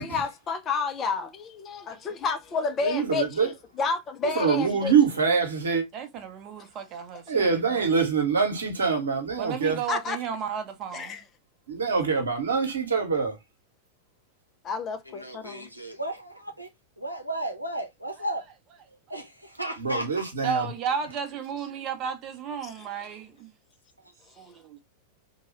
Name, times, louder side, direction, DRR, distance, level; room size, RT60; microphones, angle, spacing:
voice 1, 0.0-5.0 9.9-10.2 10.9-11.2 14.6-15.7 22.6-23.0, left 4 dB, 30° left, 0.5 m, -30 dB
voice 2, 2.8-3.5 4.3-5.8 7.3-9.8 11.7-13.4 19.8-20.7, right 5 dB, 70° right, 1.0 m, -24 dB
voice 3, 5.9-8.0 9.4-11.2 20.4-23.5 24.4-24.8, right 7 dB, 35° right, 0.7 m, -33 dB
voice 4, 15.1-16.7 17.0-18.4 19.1-20.3 24.0-24.1, right 1 dB, 90° left, 0.7 m, -34 dB
2.9 x 2.3 x 2.9 m
figure-of-eight pair, 90°, 0 cm